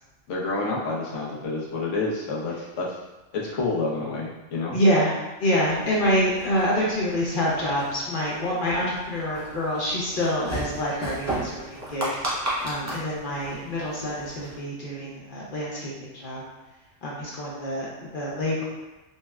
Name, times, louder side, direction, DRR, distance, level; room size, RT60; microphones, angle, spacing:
voice 1, 0.3-3.0 3.3-4.8, left 3 dB, 75° left, -4 dB, 1.0 m, -28 dB
voice 2, 4.7-16.4 17.0-18.6, equal, 55° left, -5 dB, 0.7 m, -26 dB
sound 1, 5.6-14.6, right 1 dB, 25° right, 0.4 m, -35 dB
4.1 x 2.0 x 2.2 m, 1.1 s
omnidirectional pair, 1.3 m